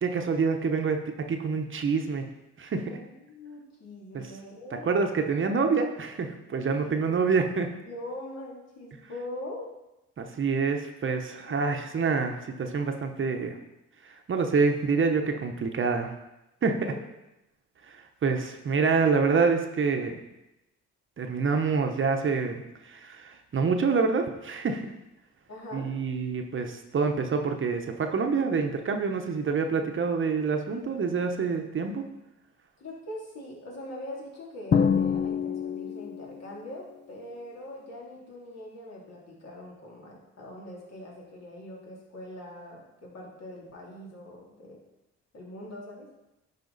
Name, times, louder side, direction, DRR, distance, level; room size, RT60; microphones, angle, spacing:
voice 1, 0.0-2.3 2.6-3.0 4.1-4.2 4.8-7.7 10.2-13.6 14.0-16.1 16.6-16.9 17.9-20.2 21.2-24.9 25.7-32.0, right 5 dB, 40° right, 5 dB, 0.9 m, -27 dB
voice 2, 2.8-5.1 6.7-7.2 7.8-9.7 11.5-11.6 16.9-17.0 25.5-25.9 32.8-44.8 45.3-46.1, left 1 dB, 55° left, -3 dB, 2.9 m, -42 dB
Drum, 34.7-36.4, left 7 dB, 35° left, 0.5 m, -26 dB
11.0 x 5.0 x 4.0 m, 0.95 s
cardioid pair, 90°, 30 cm